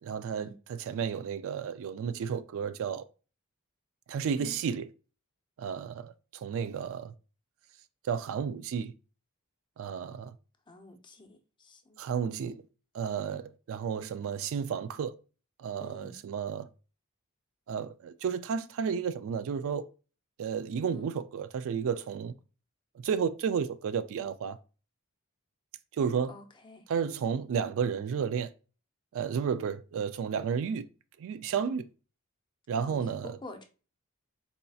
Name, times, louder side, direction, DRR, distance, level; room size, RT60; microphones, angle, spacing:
voice 1, 0.0-3.0 4.1-4.9 5.6-7.1 8.0-8.9 9.8-10.3 12.0-12.6 12.9-15.1 15.6-16.7 17.7-19.8 20.4-22.3 23.0-24.6 25.9-26.3 26.9-28.5 29.1-30.8 31.2-31.8 32.7-33.4, right 7 dB, 65° right, 0.3 m, -32 dB
voice 2, 10.7-12.0 15.8-16.2 20.9-21.1 26.3-26.9 32.8-33.6, left 2 dB, 20° left, 0.5 m, -48 dB
4.1 x 2.6 x 2.3 m
head